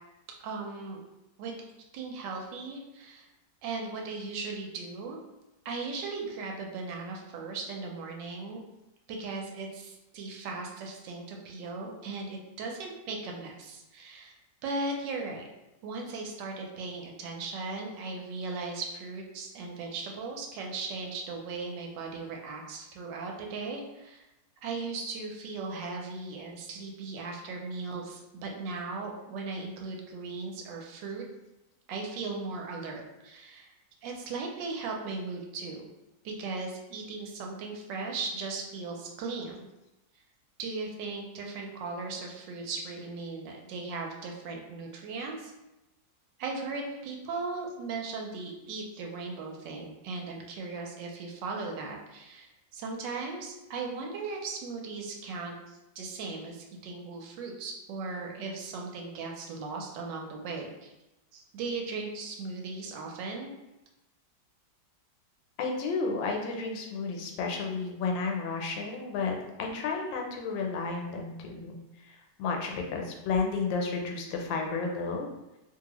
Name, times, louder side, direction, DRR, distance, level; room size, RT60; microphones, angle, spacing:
voice 1, 0.4-1.0 1.4-1.6 1.9-3.3 3.6-5.2 5.6-8.6 9.1-14.4 14.6-15.5 15.8-24.2 24.6-31.2 31.9-33.7 34.0-35.9 36.2-39.7 40.6-45.5 46.4-60.9 61.3-63.5, right 3 dB, 80° right, 1 dB, 1.2 m, -37 dB
voice 2, 65.6-71.8 72.4-75.3, left 4 dB, 85° left, 2 dB, 1.3 m, -32 dB
2.7 x 2.6 x 2.9 m, 0.95 s
omnidirectional pair, 2.0 m